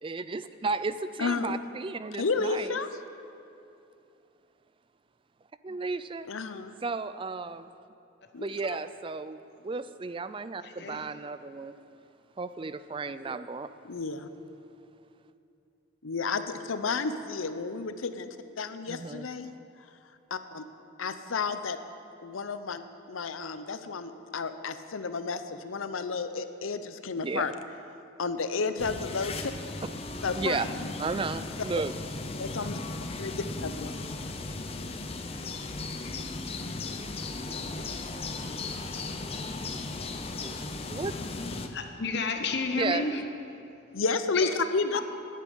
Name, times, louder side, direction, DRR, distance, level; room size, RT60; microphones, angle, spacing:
voice 1, 0.0-2.8 5.6-6.3 6.8-7.7 8.4-11.7 12.4-13.7 18.9-19.3 27.2-27.5 30.3-30.7 31.0-31.9 34.4-34.5 35.0-35.1 36.2-36.3 36.8-41.1 42.8-43.0, right 4 dB, 25° right, 13 dB, 0.3 m, -35 dB
voice 2, 1.2-1.6 2.2-2.9 6.3-6.8 8.3-8.8 13.8-14.3 16.0-18.3 18.6-19.5 20.3-20.6 21.0-21.8 22.2-27.5 28.2-29.5 30.2-30.8 32.4-32.8 33.2-34.1 43.9-45.0, left 4 dB, 85° left, 10 dB, 0.7 m, -32 dB
voice 3, 10.6-11.1 41.7-43.2 44.3-44.5 44.9-45.0, left 4 dB, 55° left, 5 dB, 0.9 m, -31 dB
sound 1, 28.8-41.7, left 3 dB, 30° left, 0.7 m, -36 dB
11.0 x 8.5 x 9.4 m, 2.7 s
head